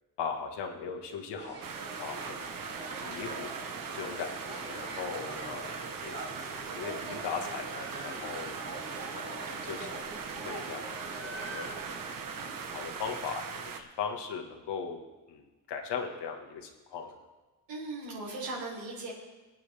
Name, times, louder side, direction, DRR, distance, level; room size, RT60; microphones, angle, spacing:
voice 1, 0.2-1.6 2.0-2.5 3.0-3.5 3.9-8.5 9.1-10.0 10.4-11.7 12.3-15.0 15.3-17.2, left 6 dB, 75° left, 3 dB, 1.8 m, -39 dB
sound 1, 1.4-13.2, right 2 dB, 35° right, 2.7 m, -43 dB
sound 2, 1.6-13.8, right 6 dB, 50° right, 1.3 m, -40 dB
voice 2, 17.7-19.1, right 2 dB, 85° right, -5 dB, 4.2 m, -38 dB
22.0 x 9.2 x 3.5 m, 1.2 s
cardioid pair, 115°, 41 cm